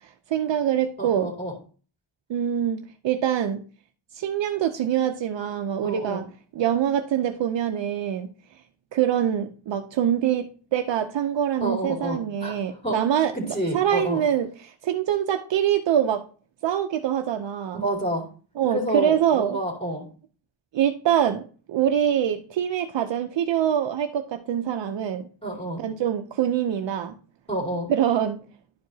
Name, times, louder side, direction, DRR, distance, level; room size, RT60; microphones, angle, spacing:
voice 1, 0.3-1.3 2.3-3.6 4.1-6.2 6.6-8.3 8.9-13.3 13.7-16.2 16.6-17.8 18.6-19.6 20.7-25.3 25.8-27.1 27.9-28.4, right 9 dB, 65° right, 6 dB, 0.6 m, -24 dB
voice 2, 1.0-1.5 5.8-6.2 11.6-13.0 13.3-14.2 17.7-18.3 18.7-20.1 25.4-25.8 27.5-27.9, right 1 dB, 10° left, -5 dB, 2.6 m, -29 dB
11.0 x 4.6 x 2.7 m, 0.39 s
wide cardioid pair, 140°, 48 cm